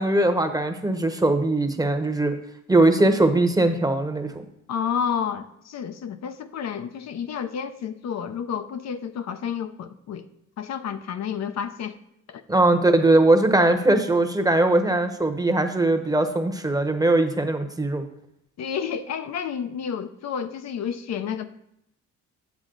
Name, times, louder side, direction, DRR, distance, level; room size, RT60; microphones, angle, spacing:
voice 1, 0.0-2.4 2.7-4.4 12.5-18.0, right 2 dB, 10° right, 7 dB, 1.0 m, -20 dB
voice 2, 4.7-10.3 10.6-12.0 12.3-12.4 18.6-21.5, left 7 dB, 60° left, 9 dB, 0.6 m, -30 dB
8.3 x 7.1 x 3.9 m, 0.76 s
cardioid pair, 90°, 30 cm